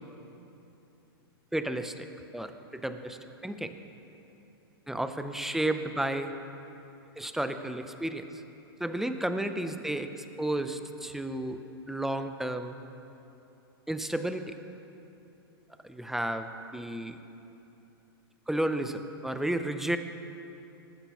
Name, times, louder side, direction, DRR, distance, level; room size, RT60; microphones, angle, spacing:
voice 1, 1.5-2.1 2.3-3.7 4.9-6.3 7.2-8.3 8.8-11.6 11.9-12.8 13.9-14.6 15.8-17.2 18.5-20.0, right 1 dB, 5° right, 8 dB, 0.6 m, -32 dB
19.0 x 14.5 x 3.1 m, 2.9 s
hypercardioid pair, 125°, 13 cm